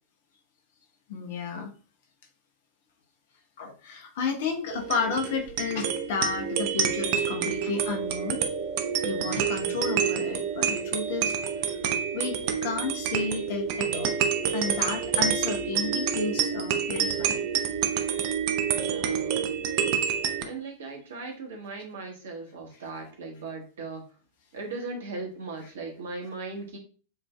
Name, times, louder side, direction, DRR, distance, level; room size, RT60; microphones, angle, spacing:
voice 1, 1.1-1.7 3.6-8.5 9.0-11.3 11.7-11.8 12.1-14.1 14.5-17.4, left 5 dB, 55° left, 4 dB, 0.8 m, -32 dB
sound 1, 4.7-20.4, right 7 dB, 45° right, 0.5 m, -28 dB
voice 2, 18.8-19.5 20.4-24.0 24.5-26.8, right 3 dB, 65° right, 2 dB, 1.2 m, -38 dB
7.6 x 2.6 x 2.2 m, 0.37 s
figure-of-eight pair, 90°, 0 cm